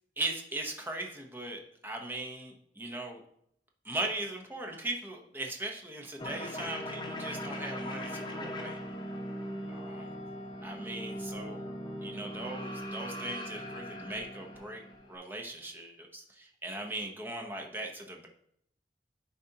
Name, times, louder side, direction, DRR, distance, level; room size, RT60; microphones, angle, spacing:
voice 1, 0.2-3.2 3.8-8.8 9.7-10.1 10.6-11.7 12.0-18.3, right 2 dB, 10° right, 1 dB, 0.8 m, -39 dB
sound 1, 6.2-15.2, equal, 25° left, 0.8 m, -40 dB
10.0 x 4.2 x 2.8 m, 0.69 s
head